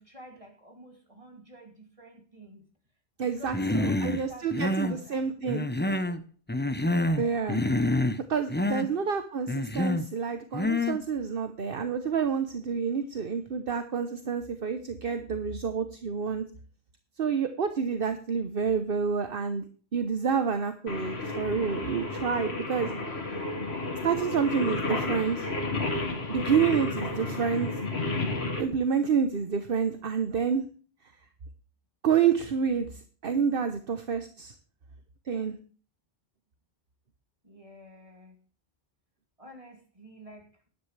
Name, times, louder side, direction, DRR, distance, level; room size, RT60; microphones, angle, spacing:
voice 1, 0.0-2.7 3.2-6.2 6.8-7.5 8.7-9.1 37.4-38.4 39.4-40.5, right 1 dB, 30° right, 2 dB, 2.7 m, -50 dB
voice 2, 3.2-5.6 7.2-7.6 8.3-16.4 17.2-19.6 19.9-22.9 24.0-25.5 26.3-27.7 28.6-30.6 32.0-32.9 33.2-34.5 35.3-35.6, right 6 dB, 60° right, 9 dB, 1.2 m, -28 dB
Human voice, 3.5-4.2 4.5-5.0 5.5-6.2 6.5-7.2 7.5-8.2 8.5-8.9 9.5-10.1 10.5-11.0, left 1 dB, 10° left, 0.7 m, -27 dB
Singing, 20.9-28.6, left 2 dB, 85° left, 2.2 m, -32 dB
13.5 x 11.0 x 3.3 m, 0.40 s
omnidirectional pair, 1.1 m